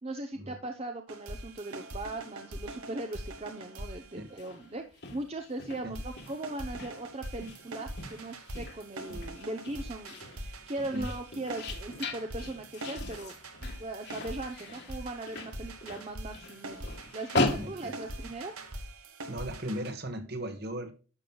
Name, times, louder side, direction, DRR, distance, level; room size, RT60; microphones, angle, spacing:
voice 1, 0.0-13.3 13.8-18.6, right 2 dB, 30° right, 0.7 m, -39 dB
sound 1, 1.1-4.8 5.9-19.9, right 1 dB, 85° right, 1.6 m, -43 dB
sound 2, 4.3-18.7, left 2 dB, 50° left, 1.6 m, -39 dB
voice 2, 17.5-17.9 19.3-20.9, equal, 45° right, 1.4 m, -37 dB
11.5 x 7.4 x 2.3 m
head